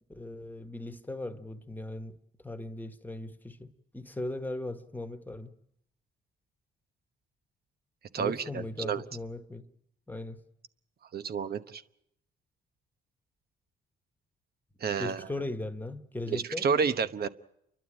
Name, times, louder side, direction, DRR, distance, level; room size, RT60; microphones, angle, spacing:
voice 1, 0.1-2.2 2.4-5.5 8.2-9.7 10.1-10.4 15.0-16.7, left 2 dB, 10° left, 1.5 m, -38 dB
voice 2, 8.1-9.0 11.1-11.8 14.8-15.3 16.3-17.3, right 6 dB, 50° right, 1.1 m, -30 dB
30.0 x 12.0 x 8.9 m
cardioid pair, 90°, 20 cm